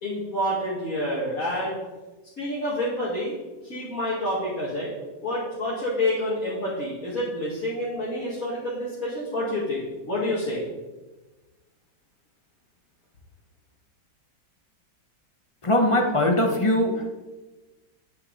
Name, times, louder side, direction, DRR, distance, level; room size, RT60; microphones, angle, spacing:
voice 1, 0.0-1.8 2.4-3.3 3.6-4.9 5.2-10.6, left 1 dB, 45° left, -8 dB, 2.7 m, -28 dB
voice 2, 15.6-17.1, left 1 dB, 25° left, 3 dB, 0.8 m, -21 dB
9.7 x 9.6 x 4.1 m, 1.2 s
omnidirectional pair, 2.0 m